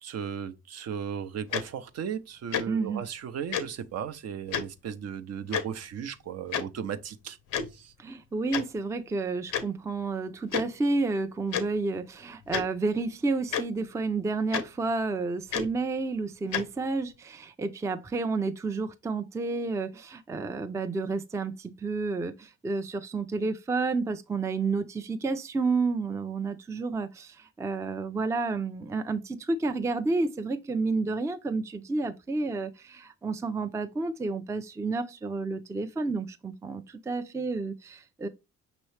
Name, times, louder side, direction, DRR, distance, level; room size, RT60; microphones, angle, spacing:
voice 1, 0.0-7.4 7.7-7.9, right 8 dB, 55° right, 0.6 m, -36 dB
Tick-tock, 1.5-1.6 2.5-2.6 3.5-3.6 4.5-4.6 5.5-5.6 6.5-6.6 7.5-7.7 8.5-8.6 9.5-9.6 10.5-10.6 11.5-11.6 12.5-12.6 13.5-13.6 14.5-14.6 15.5-15.7 16.5-16.6, left 8 dB, 90° left, 0.6 m, -29 dB
voice 2, 2.7-3.0 8.0-38.3, right 3 dB, 10° right, 0.4 m, -30 dB
5.5 x 3.0 x 3.2 m
cardioid pair, 90°, 30 cm